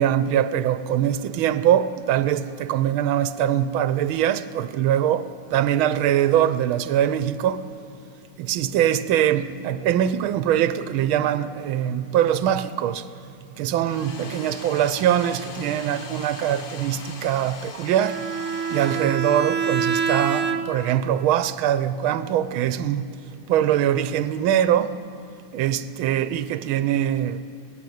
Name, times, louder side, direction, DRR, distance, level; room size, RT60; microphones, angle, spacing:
voice 1, 0.0-7.7 8.4-13.1 13.6-18.2 18.7-23.1 23.5-24.9 25.5-27.4, right 10 dB, 90° right, 1.5 m, -22 dB
Domestic sounds home sounds, 13.8-19.7, left 4 dB, 50° left, 0.6 m, -41 dB
Bowed string instrument, 18.0-21.0, right 6 dB, 45° right, 1.1 m, -26 dB
22.5 x 17.0 x 9.2 m
omnidirectional pair, 2.2 m